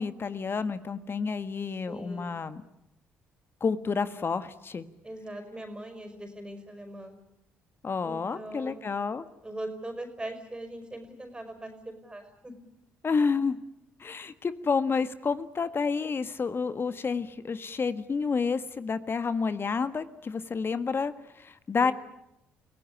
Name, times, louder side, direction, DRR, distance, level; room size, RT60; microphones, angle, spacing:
voice 1, 0.0-2.6 3.6-4.9 7.8-9.2 13.0-13.6 14.0-21.9, left 5 dB, 40° left, 12 dB, 1.6 m, -29 dB
voice 2, 1.9-2.4 5.0-7.1 8.0-8.9 9.4-12.5 21.8-21.9, right 1 dB, 15° right, 7 dB, 5.6 m, -41 dB
28.5 x 17.5 x 9.9 m, 0.87 s
hypercardioid pair, 50°, 6 cm